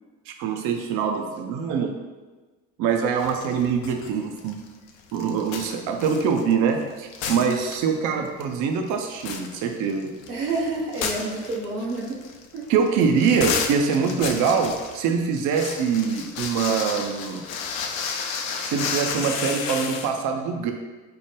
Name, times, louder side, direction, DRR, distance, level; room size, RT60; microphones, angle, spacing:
voice 1, 0.3-2.0 2.8-4.5 5.1-10.1 12.7-17.4 18.7-20.7, right 6 dB, 45° right, 4 dB, 0.5 m, -24 dB
sound 1, 3.2-4.1 4.4-6.8 7.1-8.1 8.4-8.5 8.9-20.1, left 6 dB, 65° left, 0.5 m, -32 dB
voice 2, 10.3-12.2 12.5-12.6, right 3 dB, 85° right, -2 dB, 0.8 m, -29 dB
4.5 x 2.1 x 3.1 m, 1.3 s
hypercardioid pair, 60°, 44 cm